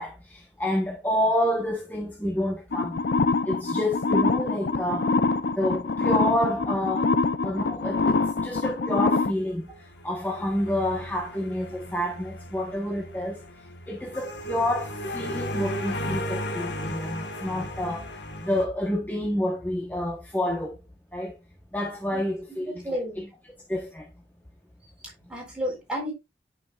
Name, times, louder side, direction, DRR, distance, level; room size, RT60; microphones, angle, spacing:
voice 1, 0.0-3.0 3.4-5.1 5.6-7.1 7.4-9.7 10.0-13.4 13.9-20.8 21.1-21.3 21.7-24.1, left 1 dB, 10° left, 1.1 m, -29 dB
sound 1, 2.7-9.3, left 3 dB, 70° left, 0.5 m, -25 dB
sound 2, 9.7-18.7, equal, 85° left, 1.5 m, -35 dB
voice 2, 22.8-23.3 25.3-26.1, equal, 5° right, 3.8 m, -31 dB
10.5 x 5.7 x 2.4 m
head